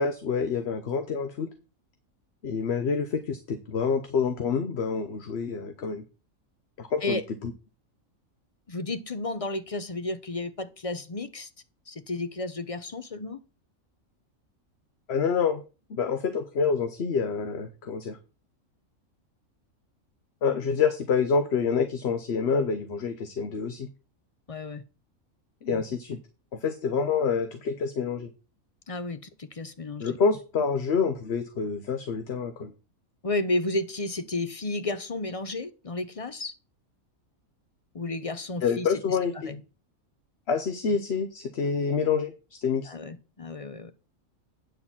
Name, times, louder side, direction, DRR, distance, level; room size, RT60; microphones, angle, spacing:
voice 1, 0.0-1.5 2.4-6.0 6.8-7.5 15.1-15.6 15.9-18.2 20.4-23.9 25.6-26.2 26.6-28.3 30.0-32.7 38.6-39.6 40.5-42.9, left 5 dB, 55° left, 1.1 m, -27 dB
voice 2, 8.7-11.5 11.9-13.4 24.5-24.8 25.7-25.8 28.9-30.2 33.2-36.5 37.9-39.0 39.5-39.6 42.8-43.9, left 2 dB, 35° left, 0.6 m, -32 dB
9.4 x 4.1 x 7.3 m
omnidirectional pair, 1.4 m